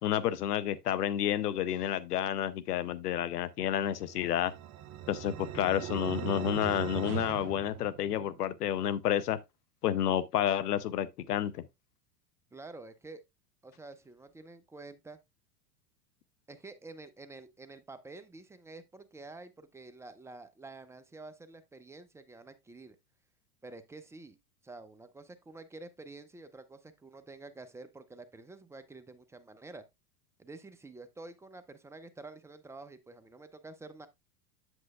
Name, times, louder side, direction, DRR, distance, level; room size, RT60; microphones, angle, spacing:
voice 1, 0.0-4.5 5.1-9.4 9.8-11.6, left 11 dB, 80° left, 0.7 m, -30 dB
sound 1, 3.9-8.5, right 12 dB, 35° right, 0.9 m, -39 dB
voice 2, 12.5-13.2 13.6-15.2 16.5-23.0 23.6-24.4 24.6-29.8 30.4-34.1, right 3 dB, 5° right, 0.5 m, -49 dB
7.9 x 7.4 x 2.3 m
hypercardioid pair, 100°, 46 cm